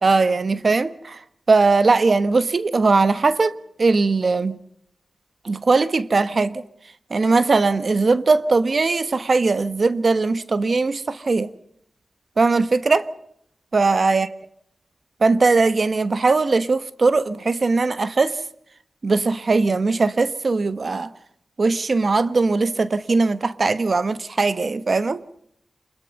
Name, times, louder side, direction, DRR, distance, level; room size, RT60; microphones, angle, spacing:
voice 1, 0.0-1.2 1.5-4.6 5.4-6.6 7.1-11.5 12.4-13.1 13.7-14.3 15.2-18.4 19.0-21.1 21.6-25.2, right 3 dB, 55° right, 1.2 m, -19 dB
26.5 x 21.5 x 5.4 m
wide cardioid pair, 70°, 0 cm